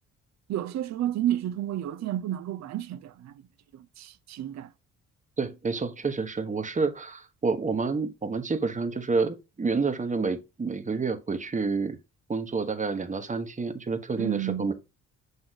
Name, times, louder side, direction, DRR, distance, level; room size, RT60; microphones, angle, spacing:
voice 1, 0.5-3.4 3.7-4.7 14.2-14.7, right 12 dB, 60° right, 0.6 m, -31 dB
voice 2, 5.4-12.0 12.3-14.7, right 4 dB, 25° right, 1.1 m, -29 dB
8.1 x 3.0 x 4.1 m
cardioid pair, 90°, 30 cm